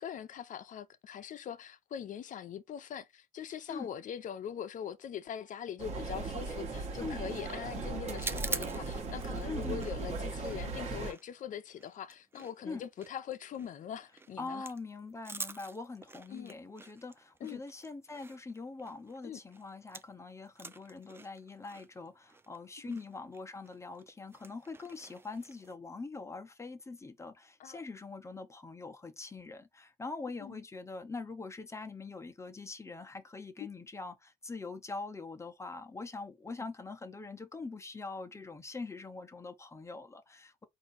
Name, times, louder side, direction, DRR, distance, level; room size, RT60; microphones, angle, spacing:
voice 1, 0.0-14.7 16.3-16.5 17.4-17.6 19.2-19.4 22.8-23.0 27.6-27.8 30.4-30.6 33.6-33.7, left 9 dB, 50° left, 0.7 m, -42 dB
sound 1, 5.8-11.1, right 3 dB, 40° right, 1.3 m, -38 dB
sound 2, 8.1-20.2 20.5-25.8, right 3 dB, 15° right, 0.5 m, -46 dB
voice 2, 9.4-9.8 12.6-12.8 14.4-40.6, left 3 dB, 15° left, 0.9 m, -43 dB
4.3 x 2.7 x 4.1 m
cardioid pair, 110°, 17 cm